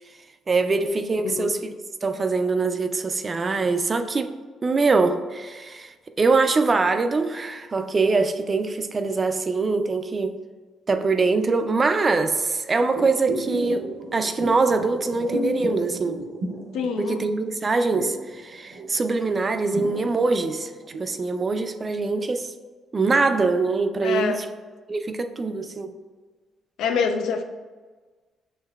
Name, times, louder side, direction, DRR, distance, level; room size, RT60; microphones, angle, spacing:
voice 1, 0.5-1.7 2.0-4.3 4.6-10.4 10.9-16.2 17.0-20.7 21.0-22.5 22.9-24.5 24.9-25.9, right 3 dB, 35° right, 0.3 m, -23 dB
sound 1, 12.9-17.4 17.6-21.1 21.5-21.6, right 1 dB, 85° right, 0.7 m, -33 dB
voice 2, 16.7-17.2 24.0-24.4 26.8-27.4, left 5 dB, 85° left, 0.4 m, -25 dB
6.4 x 3.1 x 2.3 m
cardioid pair, 90°, 0 cm